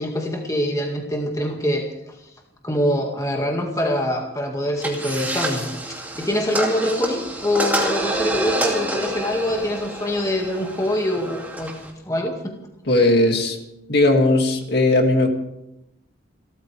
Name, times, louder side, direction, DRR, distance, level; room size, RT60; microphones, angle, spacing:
voice 1, 0.0-1.9 2.6-5.7 6.2-11.7 12.1-12.5, left 1 dB, 15° left, 1 dB, 2.1 m, -24 dB
sound 1, 4.8-11.9, right 1 dB, 10° right, 2.6 m, -28 dB
voice 2, 12.9-13.6 13.9-15.3, left 2 dB, 55° left, 3 dB, 2.4 m, -17 dB
30.0 x 14.0 x 3.5 m, 0.85 s
head